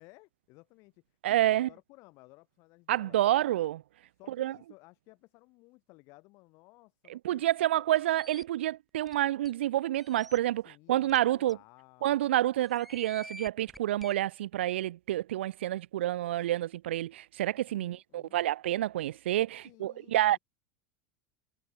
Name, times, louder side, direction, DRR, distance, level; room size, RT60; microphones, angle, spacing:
voice 1, 0.0-3.2 4.2-7.4 7.8-7.9 10.6-12.3 17.6-18.4 19.6-20.4, left 24 dB, 60° left, 4.6 m, -57 dB
voice 2, 1.2-1.7 2.9-3.8 4.4-4.5 7.1-11.6 12.0-20.4, right 13 dB, 80° right, 0.5 m, -28 dB
sound 1, 8.0-8.4 9.1-9.2 9.4-9.5 10.0-10.4 11.1-11.2 11.5-11.6 12.6-14.1, equal, ahead, 1.3 m, -48 dB
hypercardioid pair, 85°, 6 cm